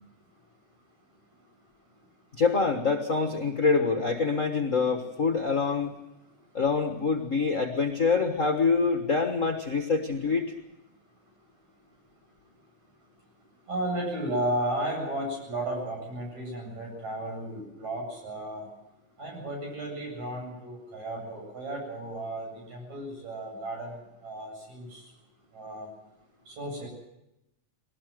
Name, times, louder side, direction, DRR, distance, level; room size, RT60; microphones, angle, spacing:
voice 1, 2.3-5.9 6.5-10.5, left 4 dB, 45° left, 5 dB, 1.0 m, -25 dB
voice 2, 13.7-18.7 19.2-24.0 24.2-25.0 25.5-25.9 26.5-26.9, right 1 dB, 70° right, 0 dB, 9.2 m, -34 dB
21.0 x 18.5 x 7.8 m, 0.88 s
omnidirectional pair, 3.4 m